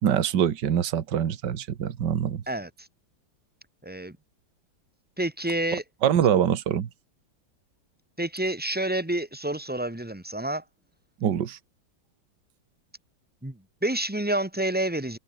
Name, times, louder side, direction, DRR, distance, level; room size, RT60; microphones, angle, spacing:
voice 1, 0.0-2.4 6.0-6.9 11.2-11.6, right 9 dB, 65° right, 2.0 m, -24 dB
voice 2, 2.5-2.9 3.8-4.2 5.2-5.8 8.2-10.6 13.4-15.2, right 1 dB, 5° right, 1.5 m, -29 dB
omnidirectional pair, 2.1 m